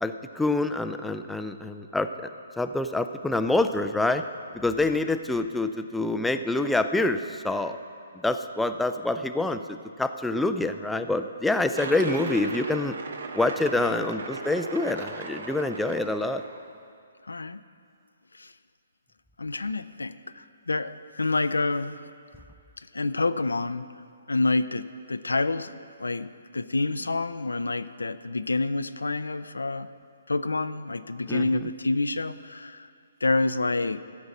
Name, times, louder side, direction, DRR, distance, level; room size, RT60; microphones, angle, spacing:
voice 1, 0.0-2.1 2.6-4.2 4.5-7.8 8.2-13.0 13.3-16.4 31.3-31.5, left 2 dB, 5° left, 8 dB, 0.3 m, -26 dB
sound 1, 11.7-16.7, right 4 dB, 65° right, 0.9 m, -37 dB
voice 2, 17.2-17.6 18.3-18.5 19.4-22.0 22.9-23.9 24.3-29.9 30.3-32.9 33.2-34.0, left 3 dB, 90° left, 13 dB, 0.4 m, -28 dB
13.5 x 5.2 x 7.1 m, 2.3 s
hypercardioid pair, 135°, 0 cm